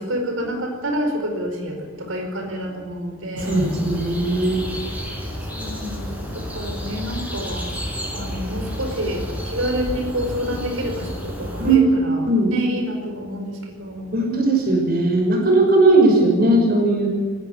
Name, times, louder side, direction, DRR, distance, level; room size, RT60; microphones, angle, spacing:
voice 1, 0.0-3.7 5.5-7.7 8.1-14.2, equal, 80° right, 3 dB, 4.9 m, -28 dB
sound 1, 3.4-11.8, equal, 5° right, 4.6 m, -31 dB
voice 2, 3.4-4.7 11.6-11.9 12.2-12.5 14.1-17.1, right 2 dB, 50° right, 2 dB, 6.0 m, -18 dB
19.0 x 16.5 x 9.8 m, 1.5 s
head